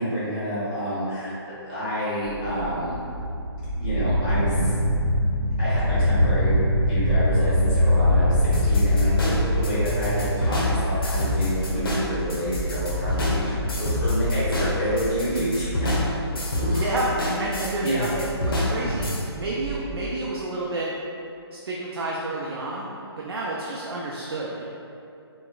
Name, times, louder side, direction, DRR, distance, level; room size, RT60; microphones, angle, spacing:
voice 1, 0.0-1.3 1.6-3.0 3.8-4.7 5.6-6.6 6.9-15.9 16.6-16.9 17.8-18.1, equal, 20° left, -12 dB, 0.8 m, -28 dB
sound 1, 2.2-20.1, equal, 90° right, 0.8 m, -25 dB
sound 2, 8.5-19.2, left 2 dB, 60° left, 0.7 m, -27 dB
voice 2, 16.7-17.1 17.4-20.9 21.5-22.9 23.2-24.7, right 2 dB, 65° right, -4 dB, 0.4 m, -30 dB
4.1 x 2.0 x 2.3 m, 2.6 s
hypercardioid pair, 175°, 14 cm